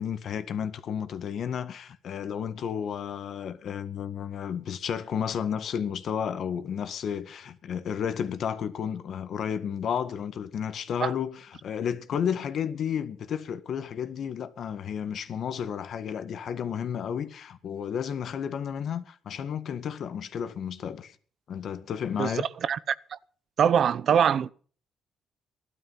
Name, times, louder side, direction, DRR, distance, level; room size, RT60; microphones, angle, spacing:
voice 1, 0.0-21.2 21.5-22.5, left 8 dB, 65° left, 1.8 m, -32 dB
voice 2, 22.6-23.2 23.6-24.5, right 8 dB, 60° right, 0.8 m, -23 dB
16.0 x 12.5 x 5.7 m
cardioid pair, 90°, 0 cm